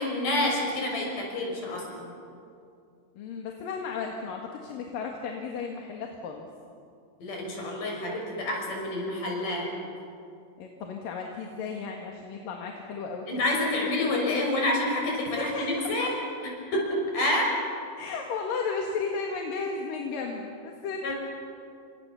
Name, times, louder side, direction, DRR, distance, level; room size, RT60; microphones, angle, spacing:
voice 1, 0.0-2.1 7.2-9.7 13.3-16.1 16.4-16.8 17.1-17.5 21.0-21.1, left 1 dB, 70° left, -1 dB, 7.6 m, -28 dB
voice 2, 3.2-6.5 10.6-13.3 15.3-16.1 18.0-21.1, left 5 dB, 85° left, 1 dB, 3.5 m, -34 dB
29.5 x 26.0 x 7.1 m, 2.4 s
omnidirectional pair, 3.9 m